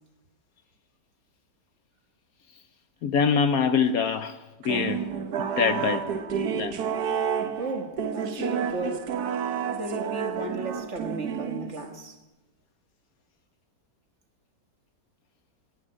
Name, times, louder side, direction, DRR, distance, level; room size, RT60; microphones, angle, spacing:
voice 1, 3.0-4.4 4.6-5.0 5.4-6.1 6.5-6.8, left 6 dB, 65° left, 1.1 m, -24 dB
sound 1, 4.6-12.0, right 7 dB, 65° right, 1.5 m, -30 dB
voice 2, 7.6-9.1 9.7-12.2, right 2 dB, 45° right, 1.6 m, -34 dB
12.5 x 10.5 x 9.8 m
omnidirectional pair, 1.9 m